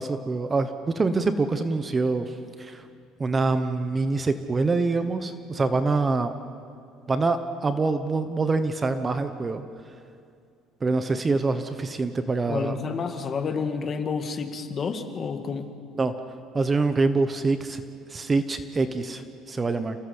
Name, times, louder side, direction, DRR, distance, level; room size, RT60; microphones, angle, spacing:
voice 1, 0.0-2.8 3.2-6.3 7.1-9.6 10.8-12.8 15.9-16.1 16.5-17.8 18.1-20.0, right 3 dB, 20° right, 9 dB, 1.0 m, -25 dB
voice 2, 12.5-15.7, left 5 dB, 30° left, 7 dB, 1.6 m, -29 dB
28.0 x 16.5 x 8.1 m, 2.3 s
cardioid pair, 145°, 0 cm